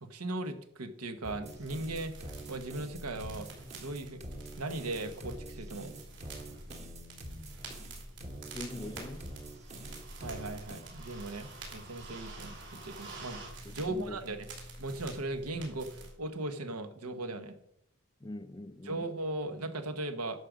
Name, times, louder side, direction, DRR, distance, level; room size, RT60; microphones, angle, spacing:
voice 1, 0.0-3.5 3.7-4.2 4.6-6.0 10.2-14.5 14.8-17.6 18.8-20.5, right 2 dB, 85° right, 1.2 m, -38 dB
sound 1, 1.2-10.8, right 1 dB, 30° right, 1.1 m, -46 dB
sound 2, 1.4-16.1, right 2 dB, 55° right, 3.1 m, -47 dB
voice 2, 8.4-9.3 13.6-14.2 18.2-19.1, left 1 dB, 20° left, 0.4 m, -43 dB
11.0 x 6.7 x 5.1 m
head